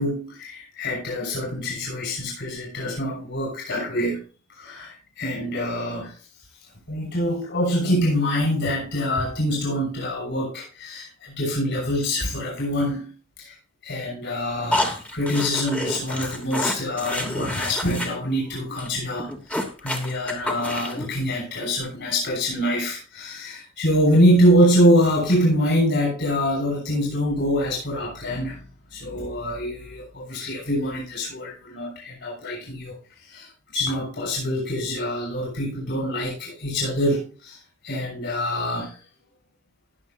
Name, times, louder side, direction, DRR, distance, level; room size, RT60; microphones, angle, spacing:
voice 1, 0.0-4.2 4.6-6.1 6.9-13.5 13.8-28.6 28.9-32.9 33.3-37.6 37.8-38.9, equal, 55° left, -3 dB, 6.5 m, -25 dB
sound 1, 14.7-18.1 18.4-18.5 18.8-18.9 19.2-21.1, left 1 dB, 5° left, 1.3 m, -28 dB
19.5 x 6.8 x 2.7 m, 0.35 s
head